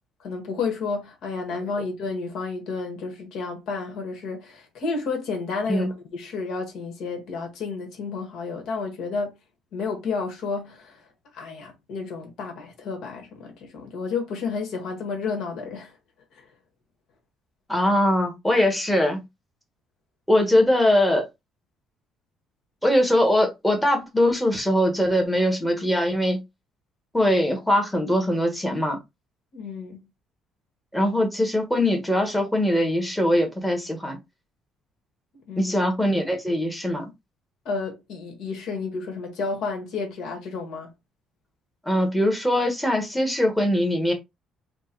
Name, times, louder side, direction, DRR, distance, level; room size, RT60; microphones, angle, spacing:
voice 1, 0.2-9.3 9.7-11.0 11.3-16.0 29.5-30.0 35.5-35.8 37.7-40.9, left 4 dB, 60° left, 1.8 m, -31 dB
voice 2, 17.7-19.2 20.3-21.3 22.8-26.4 27.1-29.0 30.9-34.2 35.6-37.0 41.9-44.1, left 1 dB, 5° left, 1.2 m, -22 dB
4.5 x 2.4 x 4.5 m
cardioid pair, 180°, 0 cm